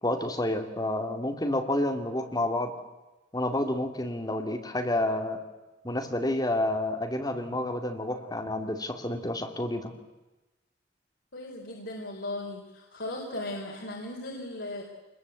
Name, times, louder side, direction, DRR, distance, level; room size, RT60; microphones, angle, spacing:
voice 1, 0.0-2.7 3.3-5.4 5.8-9.9, left 1 dB, 20° left, 4 dB, 2.4 m, -29 dB
voice 2, 11.3-14.8, left 1 dB, 75° left, -3 dB, 4.2 m, -37 dB
26.0 x 21.5 x 8.4 m, 1.1 s
head